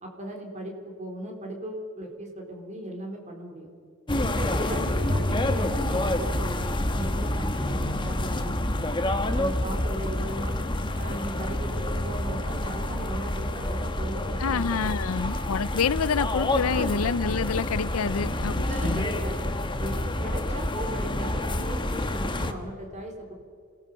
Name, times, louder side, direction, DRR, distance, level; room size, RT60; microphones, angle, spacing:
voice 1, 0.0-3.7 4.1-9.0 9.3-10.6 10.9-14.7 15.2-15.5 16.7-17.0 18.2-19.5 19.8-23.3, right 1 dB, 30° right, 2 dB, 3.8 m, -37 dB
sound 1, 4.1-22.5, left 1 dB, 20° left, 1.1 m, -28 dB
voice 2, 14.4-19.1, left 6 dB, 75° left, 19 dB, 0.5 m, -27 dB
26.5 x 18.5 x 5.6 m, 2.4 s
head